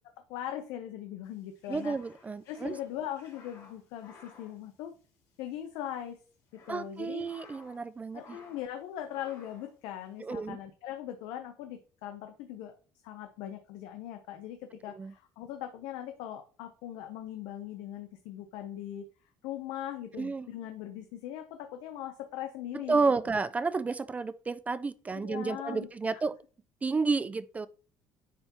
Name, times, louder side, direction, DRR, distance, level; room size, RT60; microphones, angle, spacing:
voice 1, 0.3-2.0 2.5-4.9 5.4-6.2 6.7-7.3 8.1-12.7 13.0-19.1 19.4-23.0 25.2-25.9 26.1-26.2, left 11 dB, 80° left, 0.7 m, -40 dB
sound 1, 1.3-5.4 5.7-5.8 6.3-7.9 8.1-8.7 9.1-9.7, left 4 dB, 55° left, 2.4 m, -56 dB
voice 2, 1.7-2.8 6.7-8.4 10.2-10.6 14.9-15.1 20.2-20.5 22.7-26.4 26.8-27.7, right 4 dB, 20° right, 0.3 m, -31 dB
9.5 x 3.5 x 2.9 m
cardioid pair, 115°, 7 cm